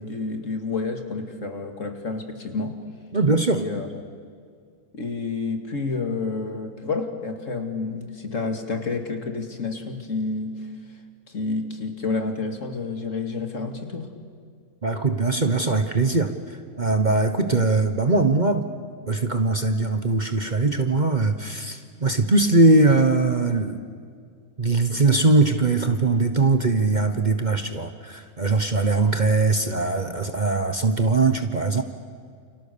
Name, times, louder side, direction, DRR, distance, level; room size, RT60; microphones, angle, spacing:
voice 1, 0.0-2.8 3.6-3.9 4.9-10.7 11.3-14.1, left 3 dB, 55° left, 5 dB, 2.6 m, -29 dB
voice 2, 3.1-3.7 14.8-16.3 16.8-18.7 19.1-23.8 24.6-31.8, right 3 dB, 30° right, 7 dB, 1.2 m, -21 dB
29.0 x 29.0 x 6.9 m, 2.1 s
omnidirectional pair, 1.6 m